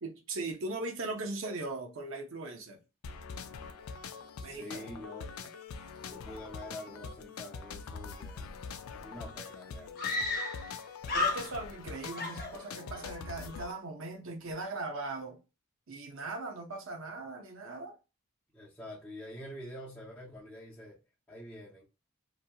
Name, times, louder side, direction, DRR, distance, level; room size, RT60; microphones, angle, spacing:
voice 1, 0.0-2.8 4.4-4.8 11.1-15.4 15.9-18.0, right 2 dB, 70° right, 0.7 m, -39 dB
sound 1, 3.0-13.7, left 5 dB, 90° left, 0.4 m, -44 dB
voice 2, 4.4-5.3 6.1-8.6 9.0-10.3 18.5-21.0 21.3-21.8, left 1 dB, 10° left, 0.6 m, -46 dB
Screaming, 8.9-9.0 9.2-9.3 10.0-10.8 11.0-11.8 12.2-13.1, left 3 dB, 45° left, 0.7 m, -33 dB
2.9 x 2.7 x 2.2 m
head